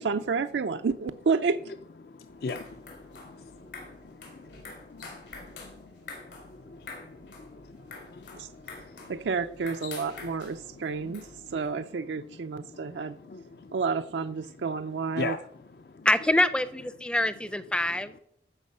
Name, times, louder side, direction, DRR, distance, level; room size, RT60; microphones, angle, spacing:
voice 1, 0.0-1.6 8.4-8.5 9.1-13.2 13.7-15.4, right 5 dB, 85° right, 0.5 m, -30 dB
voice 2, 2.0-9.2 9.9-10.3 10.6-13.8 14.4-14.8 15.1-16.1 17.9-18.0, left 4 dB, 60° left, 0.5 m, -43 dB
sound 1, 2.3-11.7, left 3 dB, 85° left, 4.0 m, -47 dB
voice 3, 16.0-18.1, left 1 dB, 5° left, 0.5 m, -25 dB
14.5 x 6.2 x 5.4 m
head